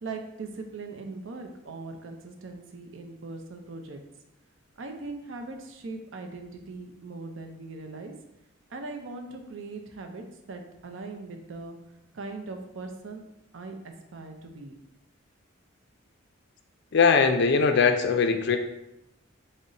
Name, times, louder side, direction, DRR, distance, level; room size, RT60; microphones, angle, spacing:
voice 1, 0.0-4.0 4.8-8.1 8.7-11.8 12.1-13.3 13.5-14.7, right 3 dB, 65° right, 5 dB, 0.5 m, -40 dB
voice 2, 16.9-18.6, left 5 dB, 55° left, 6 dB, 0.4 m, -21 dB
3.9 x 2.1 x 3.8 m, 0.84 s
head